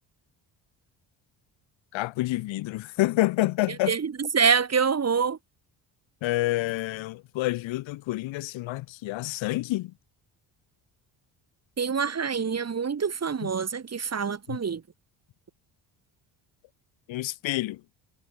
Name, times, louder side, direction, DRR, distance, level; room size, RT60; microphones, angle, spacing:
voice 1, 1.9-3.9 6.2-9.9 13.4-13.5 14.5-14.6 17.1-17.8, left 18 dB, 80° left, 7.8 m, -28 dB
voice 2, 3.7-5.4 11.8-14.8, right 6 dB, 35° right, 1.9 m, -26 dB
supercardioid pair, 70°, 45 cm